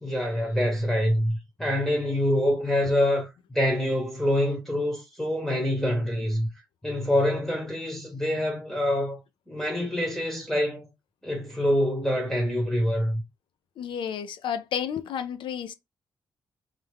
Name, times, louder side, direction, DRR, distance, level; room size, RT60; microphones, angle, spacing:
voice 1, 0.0-3.3 3.5-6.5 6.8-9.2 9.5-10.9 11.2-13.2, left 1 dB, 5° left, 0.9 m, -25 dB
voice 2, 13.8-15.7, left 8 dB, 90° left, 0.4 m, -31 dB
3.2 x 2.3 x 3.4 m
wide cardioid pair, 125°, 8 cm